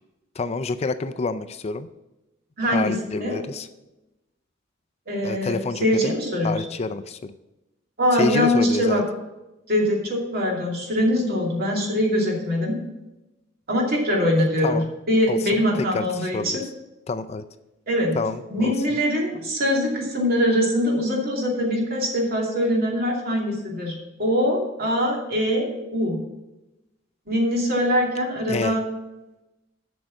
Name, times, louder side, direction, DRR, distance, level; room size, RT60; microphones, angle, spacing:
voice 1, 0.4-1.9 2.7-3.7 5.2-6.1 6.4-7.3 8.1-9.0 14.6-14.9 15.3-15.4 15.9-16.7 17.1-17.4 18.2-18.7 28.5-28.7, left 3 dB, 35° left, 11 dB, 0.4 m, -28 dB
voice 2, 2.6-3.0 3.2-3.4 5.1-5.5 5.8-6.5 8.0-9.0 9.7-12.7 13.7-14.8 15.1-16.6 17.9-18.2 18.5-26.2 27.3-28.8, equal, 55° right, -1 dB, 2.6 m, -22 dB
7.8 x 6.4 x 7.2 m, 0.99 s
head